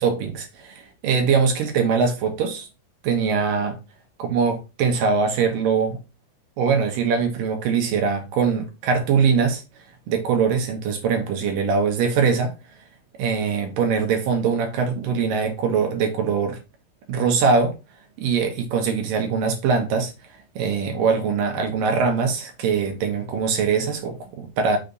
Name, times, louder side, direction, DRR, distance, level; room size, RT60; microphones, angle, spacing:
voice 1, 0.0-2.7 3.0-3.8 4.2-6.0 6.6-9.6 10.1-12.5 13.2-16.6 17.1-17.8 18.2-20.1 20.6-24.8, right 5 dB, 75° right, 2.7 m, -22 dB
6.5 x 4.3 x 5.2 m
omnidirectional pair, 4.1 m